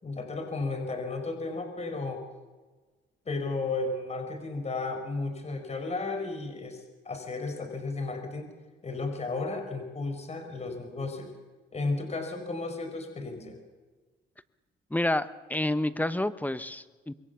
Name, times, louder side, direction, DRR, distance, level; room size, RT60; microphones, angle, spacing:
voice 1, 0.0-2.2 3.2-8.5 8.8-11.3 11.7-13.6, left 3 dB, 35° left, 6 dB, 5.1 m, -34 dB
voice 2, 14.9-17.1, left 1 dB, 10° left, 13 dB, 1.1 m, -29 dB
26.0 x 22.5 x 7.0 m, 1.3 s
cardioid pair, 90°, 20 cm